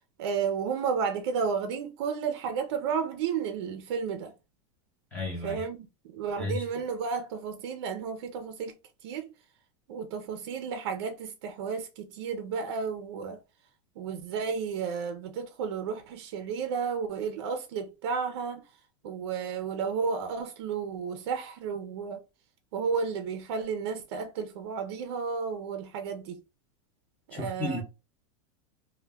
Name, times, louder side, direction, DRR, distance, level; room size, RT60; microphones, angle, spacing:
voice 1, 0.2-4.3 5.4-5.9 6.1-8.7 9.0-9.3 9.9-13.4 14.0-18.7 19.0-22.2 22.7-26.4 27.3-27.8, right 6 dB, 60° right, 0.4 m, -32 dB
voice 2, 5.1-5.6 6.4-6.6 27.3-27.8, left 2 dB, 10° left, 0.6 m, -33 dB
2.1 x 2.1 x 3.2 m
supercardioid pair, 180°, 15 cm